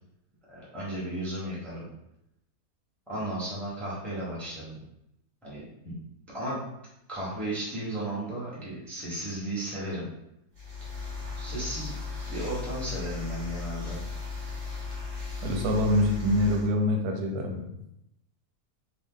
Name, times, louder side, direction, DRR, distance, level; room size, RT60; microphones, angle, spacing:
voice 1, 0.5-1.9 3.1-4.8 5.4-5.9 6.3-6.6 7.1-10.1 11.4-12.0 12.3-14.0, right 1 dB, ahead, -8 dB, 0.7 m, -34 dB
sound 1, 10.5-16.7, left 4 dB, 55° right, 1.3 m, -36 dB
voice 2, 15.4-17.6, left 1 dB, 90° right, 2 dB, 1.1 m, -25 dB
2.9 x 2.3 x 3.6 m, 0.83 s
omnidirectional pair, 1.6 m